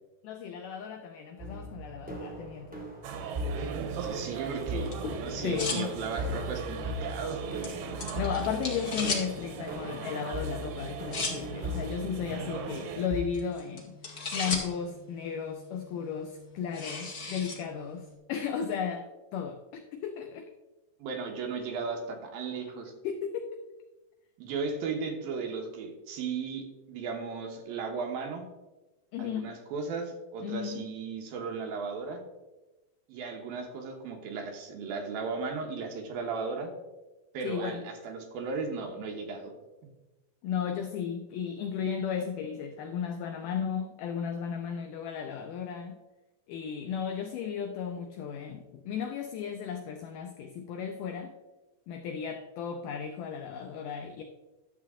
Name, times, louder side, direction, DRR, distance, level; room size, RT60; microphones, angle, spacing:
voice 1, 0.2-2.9 5.4-5.9 8.1-20.5 23.0-23.6 29.1-29.6 30.4-30.8 37.4-37.8 40.4-46.0 46.5-51.3 51.9-54.2, left 7 dB, 90° left, 6 dB, 1.8 m, -35 dB
sound 1, 1.4-13.2, equal, 5° right, 0.9 m, -39 dB
sound 2, 3.0-13.1, right 6 dB, 85° right, 2.9 m, -39 dB
voice 2, 3.7-7.4 21.0-22.9 24.4-28.4 29.2-32.2 33.1-36.7 37.3-39.5, right 5 dB, 70° right, 3 dB, 2.8 m, -36 dB
sound 3, 4.1-18.1, left 3 dB, 70° left, 0.8 m, -40 dB
11.5 x 7.5 x 3.7 m, 1.1 s
omnidirectional pair, 4.5 m